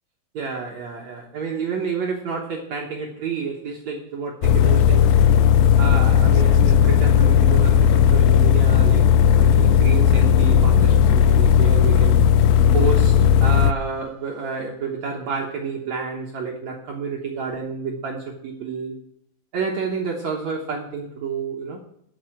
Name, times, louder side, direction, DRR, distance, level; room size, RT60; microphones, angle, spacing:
voice 1, 0.3-5.1 5.8-12.2 12.7-19.0 19.5-21.8, right 5 dB, 60° right, 0 dB, 2.1 m, -29 dB
sound 1, 4.4-13.7, left 8 dB, 85° left, 2.3 m, -15 dB
12.0 x 6.2 x 7.7 m, 0.74 s
omnidirectional pair, 4.2 m